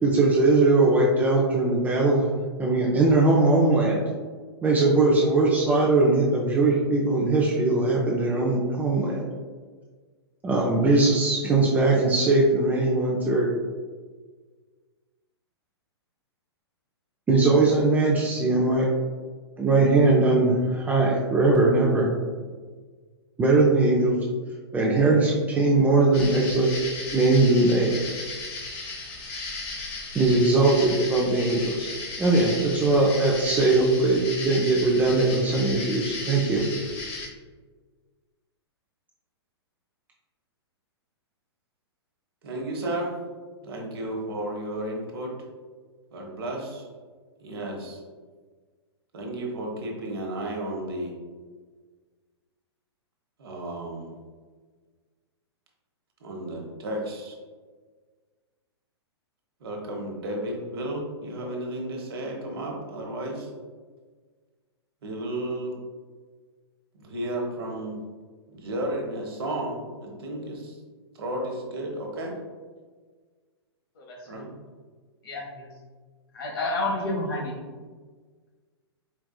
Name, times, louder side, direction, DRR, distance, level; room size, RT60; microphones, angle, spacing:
voice 1, 0.0-2.3 2.6-4.0 4.6-9.2 10.4-13.5 17.3-18.9 19.6-22.1 23.4-24.2 24.7-26.7 27.1-28.0 30.1-31.9 32.2-36.6, right 2 dB, 10° right, -3 dB, 0.5 m, -20 dB
sound 1, 26.1-37.3, left 3 dB, 35° left, 1.0 m, -36 dB
voice 2, 42.4-43.2 43.6-45.3 46.1-46.8 47.4-48.0 49.1-51.1 53.4-54.1 56.2-57.4 59.6-63.5 65.0-65.8 67.0-68.0 68.5-70.8 71.1-72.4 74.3-74.5, right 1 dB, 60° right, 0 dB, 1.0 m, -33 dB
voice 3, 75.2-75.7 76.3-77.5, left 2 dB, 55° left, -1 dB, 1.1 m, -29 dB
4.6 x 3.5 x 2.3 m, 1.5 s
figure-of-eight pair, 110°, 14 cm